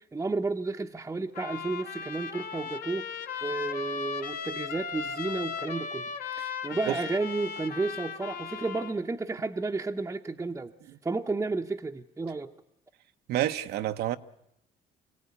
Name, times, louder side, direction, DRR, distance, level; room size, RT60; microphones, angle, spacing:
voice 1, 0.0-3.1 3.4-6.0 6.6-10.7 11.0-12.5, right 3 dB, 15° right, 0.8 m, -32 dB
Trumpet, 1.3-8.9, left 6 dB, 60° left, 1.9 m, -37 dB
voice 2, 13.3-14.2, right 13 dB, 75° right, 0.9 m, -29 dB
25.5 x 16.5 x 9.6 m
cardioid pair, 110°, 17 cm